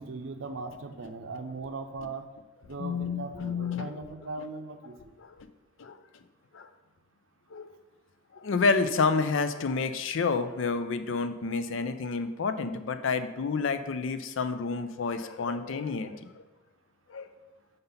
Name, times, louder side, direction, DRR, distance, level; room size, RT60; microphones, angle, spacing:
voice 1, 0.0-2.3 2.6-4.9 13.0-13.1, right 3 dB, 75° right, 7 dB, 0.6 m, -39 dB
voice 2, 2.8-3.9 5.2-5.5 5.8-6.0 6.5-6.7 7.5-7.7 8.3-16.4 17.1-17.3, left 4 dB, 70° left, 10 dB, 0.4 m, -29 dB
5.3 x 3.9 x 5.4 m, 1.1 s
head